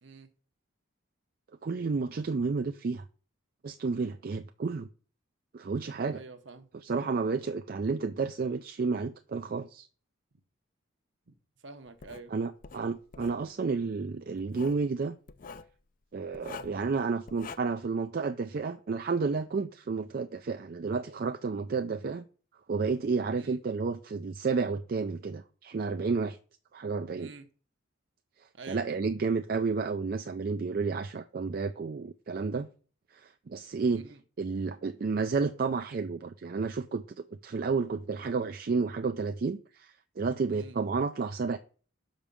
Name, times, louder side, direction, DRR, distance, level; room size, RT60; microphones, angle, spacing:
voice 1, 1.6-3.0 3.6-4.9 5.5-6.2 6.8-9.9 12.3-15.2 16.1-22.3 22.7-26.4 26.7-27.3 28.7-32.7 33.1-34.1 34.4-41.6, right 4 dB, 45° right, 0.4 m, -31 dB
voice 2, 6.1-6.7 11.3-11.4 11.6-12.3 23.4-23.6 27.2-27.5 28.5-28.9 33.9-34.2 40.5-40.8, right 3 dB, 60° right, 0.9 m, -47 dB
Writing, 12.0-12.2 12.6-13.4 14.4-14.8 15.3-15.7 16.3-16.8 17.3-17.6, left 5 dB, 40° left, 0.4 m, -45 dB
6.2 x 5.2 x 6.9 m
head